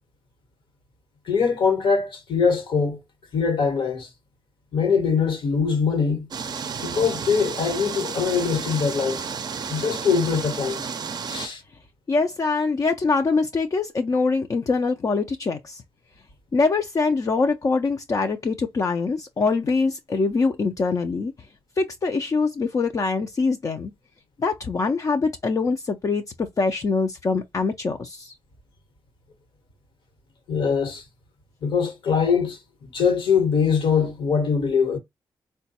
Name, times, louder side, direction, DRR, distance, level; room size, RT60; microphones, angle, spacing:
voice 1, 1.3-3.0 3.3-4.1 4.7-6.3 6.8-9.3 9.7-10.9 11.3-11.6 30.5-31.0 31.6-35.0, left 6 dB, 75° left, 1.1 m, -22 dB
sound 1, 6.3-11.5, right 6 dB, 50° right, 0.4 m, -32 dB
voice 2, 12.1-15.8 16.5-21.3 21.8-23.9 24.4-28.3, left 4 dB, 40° left, 0.4 m, -24 dB
3.8 x 2.2 x 2.8 m
cardioid pair, 75°, 9 cm